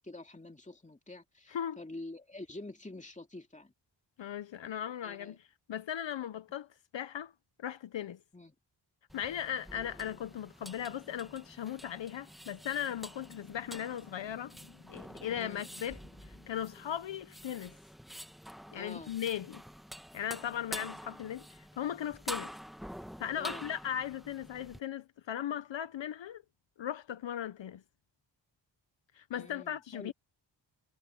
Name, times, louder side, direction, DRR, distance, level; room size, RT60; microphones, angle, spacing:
voice 1, 0.0-3.7 5.0-5.4 8.3-8.5 15.3-15.7 18.7-19.1 23.3-23.7 29.3-30.1, left 2 dB, 15° left, 2.4 m, -47 dB
voice 2, 4.2-6.7 6.9-7.3 7.6-8.2 9.1-14.5 14.9-16.0 16.5-17.8 18.7-19.6 20.1-22.5 23.2-26.4 26.8-27.8 29.1-30.1, left 10 dB, 70° left, 0.8 m, -38 dB
sound 1, 9.1-24.8, equal, ahead, 1.2 m, -47 dB
sound 2, 13.2-17.7 19.0-19.1 19.5-21.6, left 5 dB, 50° left, 3.6 m, -60 dB
cardioid pair, 75°, 47 cm